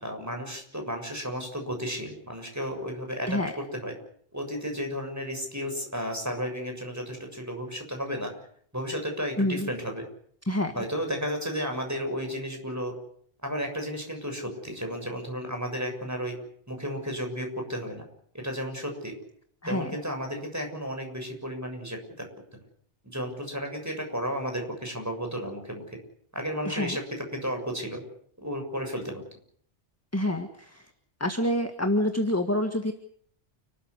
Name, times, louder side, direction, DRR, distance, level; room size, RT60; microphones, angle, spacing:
voice 1, 0.0-3.9 4.3-8.3 8.7-10.0 10.7-12.9 13.4-16.4 16.7-18.0 18.3-19.2 19.7-22.3 23.0-26.0 26.3-28.0 28.4-29.2, equal, 15° right, 3 dB, 7.0 m, -33 dB
voice 2, 9.4-9.7 10.5-10.7 19.6-19.9 26.7-27.0 30.1-30.8 31.2-32.9, left 1 dB, 15° left, 6 dB, 1.7 m, -27 dB
29.5 x 13.5 x 9.8 m, 0.63 s
omnidirectional pair, 1.2 m